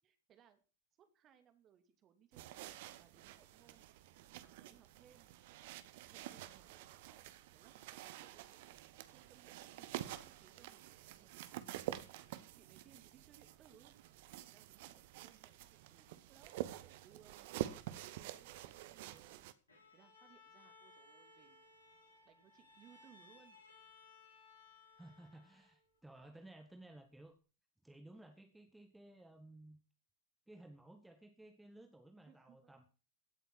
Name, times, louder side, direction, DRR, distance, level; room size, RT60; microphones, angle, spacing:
voice 1, 0.0-0.6 1.0-3.9 4.4-5.3 6.1-8.8 9.1-10.8 11.1-11.9 12.5-14.0 14.4-16.5 16.8-19.5 19.9-21.6 22.2-23.6 32.2-32.7, right 9 dB, 30° right, 8 dB, 2.5 m, -67 dB
sound 1, 2.3-19.5, right 14 dB, 50° right, 1.1 m, -48 dB
Bowed string instrument, 19.7-26.0, left 3 dB, 75° left, 5.6 m, -63 dB
voice 2, 25.0-27.4 27.8-29.8 30.5-33.0, right 1 dB, 5° right, 5 dB, 1.7 m, -57 dB
16.5 x 7.9 x 6.3 m, 0.36 s
figure-of-eight pair, 90°, 0 cm